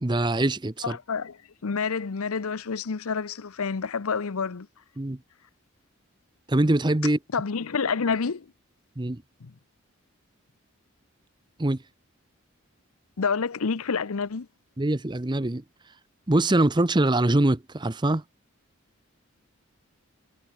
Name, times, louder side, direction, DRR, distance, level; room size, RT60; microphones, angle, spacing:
voice 1, 0.0-1.0 5.0-5.2 6.5-7.2 9.0-9.2 11.6-11.8 14.8-15.6 16.3-18.2, right 1 dB, 20° right, 0.7 m, -23 dB
voice 2, 0.8-4.7 7.3-8.5 9.4-9.5 13.2-14.5, left 5 dB, 80° left, 0.7 m, -28 dB
head